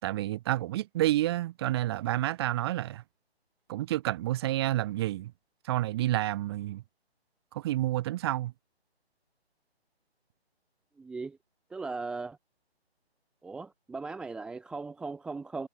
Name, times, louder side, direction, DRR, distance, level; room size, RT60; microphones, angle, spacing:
voice 1, 0.0-3.0 3.7-5.3 5.6-6.8 7.5-8.5, right 15 dB, 25° right, 3.8 m, -29 dB
voice 2, 11.0-11.4 11.7-12.4 13.4-15.7, right 3 dB, 5° right, 1.3 m, -38 dB
figure-of-eight pair, 150°, 32 cm